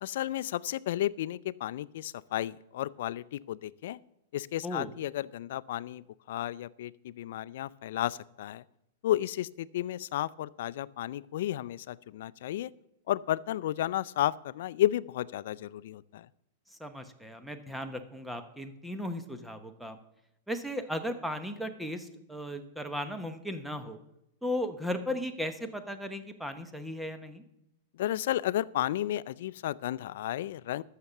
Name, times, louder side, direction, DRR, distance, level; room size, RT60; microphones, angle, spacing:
voice 1, 0.0-4.0 4.3-8.6 9.0-12.7 13.1-16.3 28.0-30.8, left 13 dB, 65° left, 18 dB, 0.4 m, -32 dB
voice 2, 16.8-20.0 20.5-24.0 24.4-27.4, left 1 dB, ahead, 8 dB, 0.9 m, -36 dB
12.5 x 6.6 x 7.2 m, 0.83 s
supercardioid pair, 150°, 0 cm